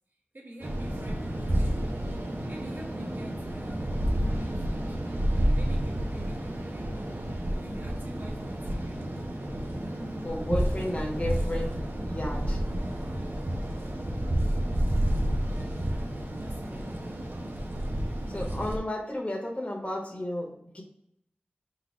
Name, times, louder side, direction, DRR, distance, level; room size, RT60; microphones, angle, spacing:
voice 1, 0.3-1.9 2.5-5.0 5.6-7.2 7.6-9.2 10.0-10.3 14.7-15.2 15.5-17.4, right 1 dB, 60° right, 1.3 m, -48 dB
sound 1, 0.6-18.8, right 1 dB, 75° right, 0.7 m, -30 dB
voice 2, 10.2-11.8 12.1-12.6 18.3-20.8, left 1 dB, 35° left, 1.3 m, -33 dB
3.9 x 2.4 x 4.6 m
wide cardioid pair, 40°, 4 cm